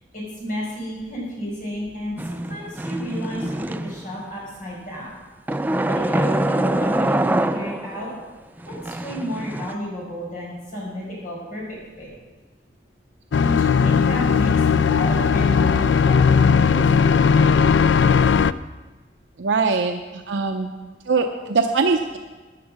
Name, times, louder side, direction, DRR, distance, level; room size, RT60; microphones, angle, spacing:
voice 1, 0.1-5.1 5.9-8.1 8.7-12.1 13.4-17.2, equal, 45° left, -4 dB, 5.0 m, -32 dB
sound 1, 2.2-4.2 5.5-8.1 8.6-9.7, right 1 dB, 10° right, 0.3 m, -24 dB
sound 2, 13.3-18.5, left 6 dB, 75° left, 0.4 m, -17 dB
voice 2, 19.4-20.7 21.1-22.2, right 4 dB, 80° right, 4 dB, 0.7 m, -22 dB
13.5 x 10.5 x 4.8 m, 1.3 s
head